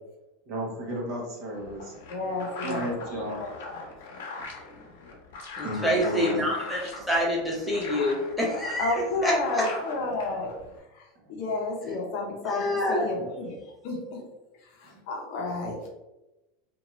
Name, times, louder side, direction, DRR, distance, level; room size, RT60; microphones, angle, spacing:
voice 1, 0.5-2.0 2.6-3.4 5.6-6.5 14.8-15.0, equal, 45° right, -2 dB, 0.8 m, -33 dB
sound 1, 1.5-10.8, left 3 dB, 85° left, 0.7 m, -40 dB
voice 2, 2.1-2.9 8.8-10.5 10.9-11.1 11.4-14.2 14.8-15.9, left 2 dB, 45° left, 0 dB, 0.6 m, -31 dB
voice 3, 5.6-8.9 9.2-9.7 12.4-13.1, equal, ahead, -5 dB, 0.6 m, -27 dB
2.6 x 2.2 x 3.0 m, 1.0 s
supercardioid pair, 170°, 0 cm